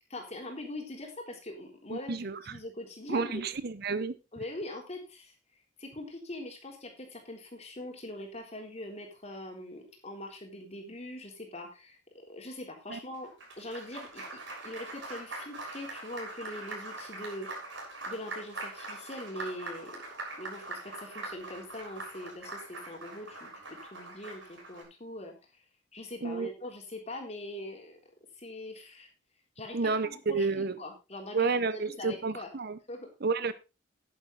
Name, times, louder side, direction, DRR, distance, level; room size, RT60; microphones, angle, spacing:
voice 1, 0.1-3.4 4.3-5.3 5.8-17.5 18.1-20.0 20.4-25.6 25.9-28.0 28.4-29.1 29.6-32.5 32.9-33.1, left 1 dB, 35° left, 3.7 m, -42 dB
voice 2, 1.9-2.6 3.1-4.1 12.9-13.0 26.2-26.5 29.7-30.8 31.3-32.8 33.2-33.5, right 4 dB, 55° right, 0.8 m, -30 dB
Applause, 13.1-24.8, right 2 dB, 80° right, 6.6 m, -42 dB
10.5 x 10.5 x 4.0 m
head